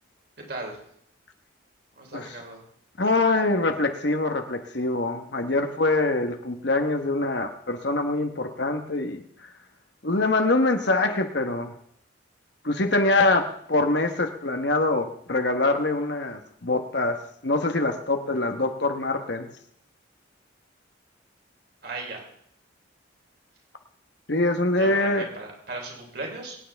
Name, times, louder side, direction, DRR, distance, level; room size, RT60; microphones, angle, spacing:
voice 1, 0.5-0.8 2.0-2.6 21.8-22.2 24.8-26.6, right 2 dB, 55° right, 1 dB, 3.5 m, -36 dB
voice 2, 3.0-9.2 10.0-11.7 12.6-19.5 24.3-25.3, left 2 dB, 60° left, 6 dB, 1.1 m, -24 dB
23.5 x 9.5 x 3.5 m, 0.69 s
head